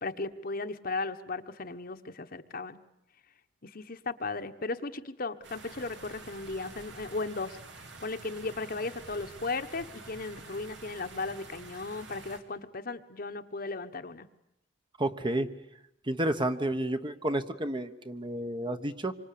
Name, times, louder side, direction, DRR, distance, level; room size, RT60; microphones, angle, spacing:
voice 1, 0.0-2.8 3.6-7.6 8.0-14.3, left 3 dB, 55° left, 8 dB, 1.3 m, -36 dB
sound 1, 5.4-12.4, right 3 dB, 80° right, 3.1 m, -48 dB
voice 2, 15.0-15.5 16.1-19.2, right 1 dB, 25° right, 9 dB, 1.2 m, -31 dB
27.0 x 25.0 x 8.6 m, 0.81 s
head